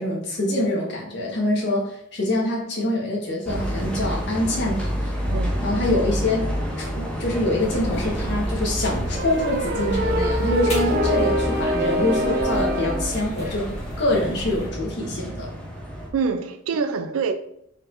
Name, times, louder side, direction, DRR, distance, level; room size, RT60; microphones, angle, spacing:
voice 1, 0.0-5.1 5.6-6.5 6.8-15.5, left 1 dB, 55° left, 1.2 m, -25 dB
sound 1, 3.4-16.1, equal, 5° left, 0.7 m, -29 dB
sound 2, 7.6-14.7, equal, 30° left, 1.6 m, -34 dB
sound 3, 9.1-13.2, equal, 50° right, 0.6 m, -24 dB
voice 2, 16.1-17.3, right 5 dB, 90° right, 0.3 m, -25 dB
4.3 x 4.1 x 2.5 m
head